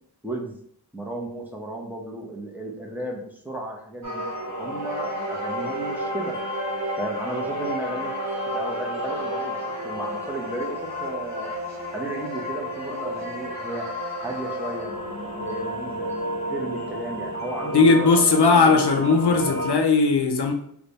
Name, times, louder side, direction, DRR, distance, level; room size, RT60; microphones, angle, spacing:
voice 1, 0.2-0.6 0.9-4.2 4.6-6.3 7.0-8.1 8.5-9.6 9.8-11.5 11.9-13.9 14.2-14.9 15.4-16.1 16.5-19.6, right 2 dB, 5° right, -1 dB, 0.8 m, -34 dB
sound 1, 4.0-19.8, equal, 40° right, 1.1 m, -31 dB
voice 2, 17.7-20.5, left 4 dB, 75° left, 5 dB, 0.6 m, -18 dB
3.2 x 2.3 x 4.0 m, 0.68 s
wide cardioid pair, 50°, 41 cm